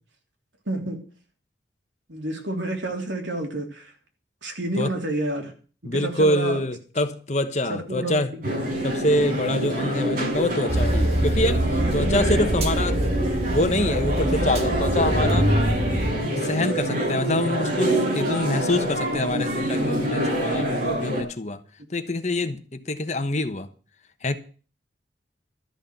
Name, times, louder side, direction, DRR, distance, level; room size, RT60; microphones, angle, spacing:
voice 1, 0.7-1.0 2.1-3.9 4.4-5.5 5.9-6.6 7.7-8.2 12.4-12.5, right 1 dB, 85° right, 3.3 m, -29 dB
voice 2, 5.8-8.3 8.8-13.1 13.5-15.5 16.4-21.6 21.9-23.7 24.2-24.4, left 1 dB, 40° left, 1.2 m, -25 dB
sound 1, 8.4-21.2, right 1 dB, 50° right, 5.7 m, -26 dB
sound 2, 10.7-16.1, right 1 dB, 35° right, 2.0 m, -24 dB
13.0 x 6.5 x 9.3 m
head